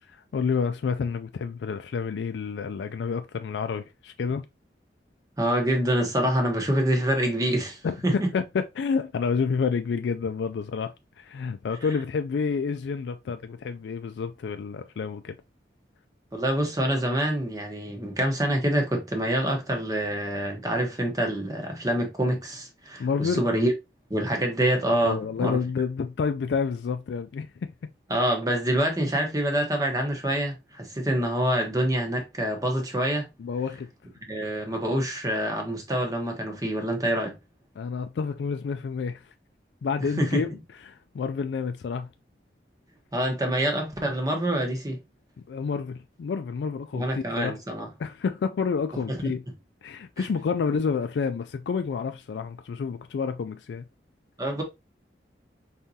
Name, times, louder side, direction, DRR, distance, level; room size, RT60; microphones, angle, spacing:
voice 1, 0.0-4.5 7.8-15.4 23.0-23.4 25.0-27.9 33.4-33.9 37.8-39.3 39.8-40.5 40.8-42.1 45.5-47.6 48.0-49.4 49.8-53.8, left 5 dB, 80° left, 0.3 m, -29 dB
voice 2, 5.4-8.3 16.3-23.7 24.1-25.6 28.1-33.3 34.3-37.4 40.2-40.5 43.1-45.0 46.9-47.9 49.1-49.2 50.2-50.3 54.4-54.6, right 1 dB, 20° right, 0.9 m, -26 dB
4.1 x 3.6 x 2.7 m
head